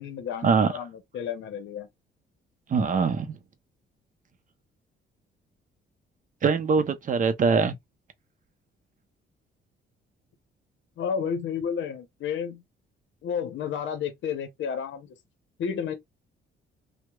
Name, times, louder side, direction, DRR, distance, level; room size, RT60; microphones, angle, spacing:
voice 1, 0.0-1.9 11.0-12.6 13.2-15.2 15.6-15.9, left 7 dB, 70° left, 0.7 m, -31 dB
voice 2, 2.7-3.4 6.4-7.8, right 5 dB, 40° right, 0.6 m, -23 dB
2.9 x 2.1 x 2.2 m
cardioid pair, 90°, 20 cm